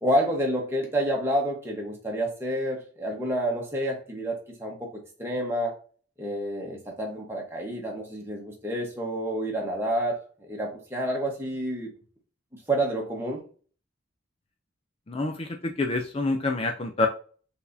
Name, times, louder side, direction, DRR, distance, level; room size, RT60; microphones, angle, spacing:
voice 1, 0.0-4.8 5.2-5.7 6.2-10.2 10.5-11.9 12.7-13.4, right 1 dB, 15° right, 1.1 m, -28 dB
voice 2, 15.1-17.1, left 2 dB, 30° left, 0.4 m, -27 dB
4.5 x 3.4 x 2.7 m
head